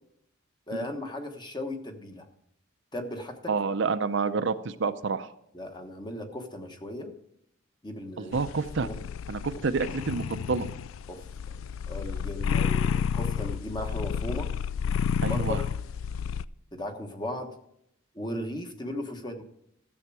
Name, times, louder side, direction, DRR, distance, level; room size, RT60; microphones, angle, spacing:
voice 1, 0.7-2.3 2.9-3.5 5.5-7.1 7.8-8.3 8.8-9.0 11.1-11.2 11.9-14.5 15.3-15.6 16.7-17.5 18.1-19.4, left 1 dB, 20° left, 5 dB, 1.2 m, -36 dB
voice 2, 3.5-5.3 8.2-8.9 9.3-10.7 15.2-15.6, right 4 dB, 65° right, 11 dB, 0.5 m, -28 dB
sound 1, 8.3-16.5, left 7 dB, 85° left, 0.3 m, -30 dB
13.5 x 7.2 x 4.7 m, 0.77 s
head